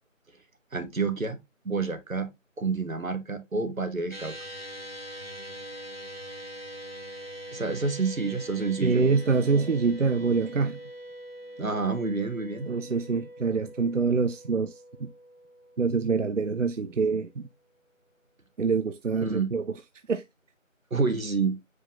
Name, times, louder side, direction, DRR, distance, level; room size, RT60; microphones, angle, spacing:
voice 1, 0.7-1.4 1.6-2.3 2.6-4.3 7.5-9.0 11.6-12.7 19.2-19.5 20.9-21.6, right 4 dB, 85° right, 1.1 m, -28 dB
sound 1, 4.1-16.6, equal, 50° left, 0.6 m, -43 dB
voice 2, 8.8-10.8 12.7-14.7 15.0-15.1 15.8-17.4 18.6-19.6 20.1-20.2, right 4 dB, 65° right, 0.5 m, -25 dB
5.1 x 3.9 x 2.6 m
figure-of-eight pair, 180°, 40 cm